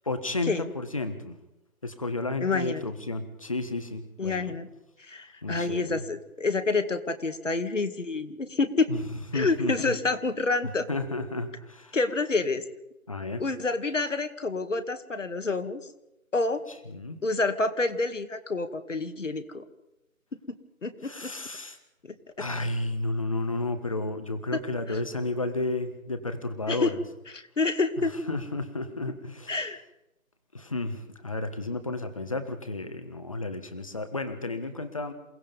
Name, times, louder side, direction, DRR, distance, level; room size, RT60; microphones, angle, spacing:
voice 1, 0.0-1.3 1.8-4.5 5.4-6.0 8.9-9.0 9.3-10.0 10.9-12.0 13.1-13.4 16.9-17.2 21.0-21.8 22.4-27.0 28.3-29.6 30.5-35.1, left 2 dB, 25° left, 9 dB, 1.5 m, -32 dB
voice 2, 2.4-2.8 4.2-4.7 5.0-8.9 9.3-10.9 11.9-12.6 13.4-15.9 16.3-16.6 17.2-19.6 20.8-21.3 24.5-24.6 24.9-25.0 26.7-26.9 27.3-28.1 29.5-29.8, left 3 dB, 60° left, 9 dB, 2.3 m, -28 dB
28.5 x 18.0 x 5.3 m, 0.91 s
figure-of-eight pair, 175°, 43 cm